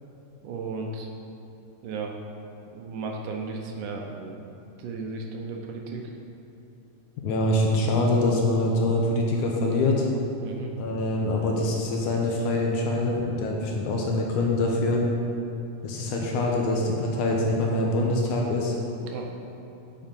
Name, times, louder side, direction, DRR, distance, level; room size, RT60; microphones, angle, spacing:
voice 1, 0.4-1.1 1.8-2.2 2.7-4.4 4.8-6.1 10.4-10.7 19.0-19.3, right 4 dB, 80° right, 1 dB, 2.3 m, -35 dB
voice 2, 7.2-10.1 10.8-15.0 15.8-18.8, left 2 dB, 75° left, -1 dB, 2.1 m, -24 dB
7.4 x 5.6 x 5.2 m, 2.9 s
omnidirectional pair, 3.8 m